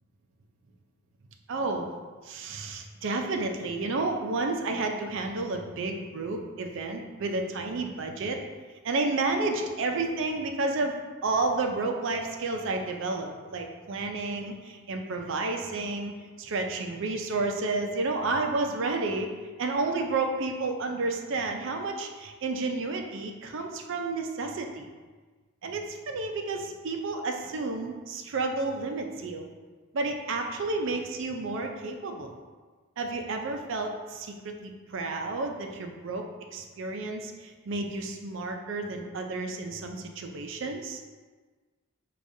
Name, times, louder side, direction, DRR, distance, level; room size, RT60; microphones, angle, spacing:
voice 1, 1.5-1.9 2.2-8.4 8.8-16.1 16.4-19.3 19.6-24.9 25.6-29.5 29.9-32.4 33.0-41.0, right 3 dB, 55° right, 3 dB, 0.4 m, -31 dB
4.9 x 2.3 x 2.6 m, 1.4 s
head